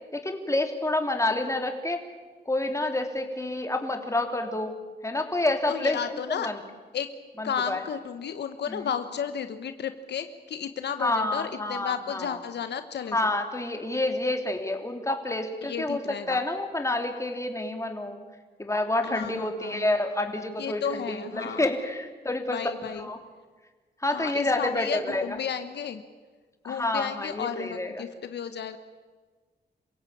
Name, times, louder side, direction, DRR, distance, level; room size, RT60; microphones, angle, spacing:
voice 1, 0.1-2.0 2.4-4.7 5.0-6.0 6.3-6.6 7.4-7.8 8.7-8.9 11.0-12.3 13.1-18.2 18.6-22.6 22.9-23.2 24.0-25.4 26.6-28.0, left 2 dB, 15° left, 4 dB, 3.4 m, -28 dB
voice 2, 5.7-6.5 6.9-7.1 7.4-13.4 15.6-16.4 19.0-19.9 20.6-21.7 22.5-23.1 24.1-26.0 26.6-28.8, left 8 dB, 85° left, 9 dB, 1.3 m, -33 dB
27.5 x 16.5 x 8.7 m, 1.4 s
cardioid pair, 75°, 17 cm